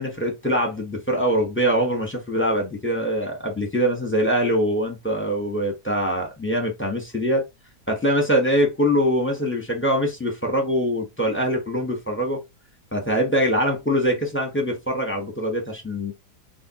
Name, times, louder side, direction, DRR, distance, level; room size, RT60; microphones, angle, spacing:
voice 1, 0.0-7.4 7.9-12.4 12.9-16.1, equal, 10° left, 0.8 m, -23 dB
4.2 x 2.3 x 2.9 m
omnidirectional pair, 1.8 m